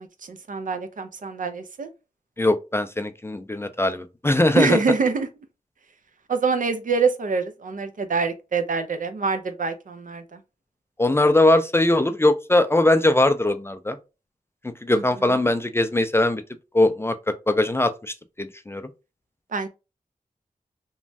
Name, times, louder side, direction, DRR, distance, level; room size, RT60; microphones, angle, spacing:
voice 1, 0.0-1.9 4.5-5.3 6.3-10.4 14.9-15.4 19.5-19.7, right 4 dB, 65° right, 0.5 m, -25 dB
voice 2, 2.4-4.8 11.0-14.0 14.6-16.4 16.7-18.8, left 2 dB, 15° left, 0.3 m, -21 dB
3.0 x 2.2 x 2.6 m
wide cardioid pair, 70°, 15 cm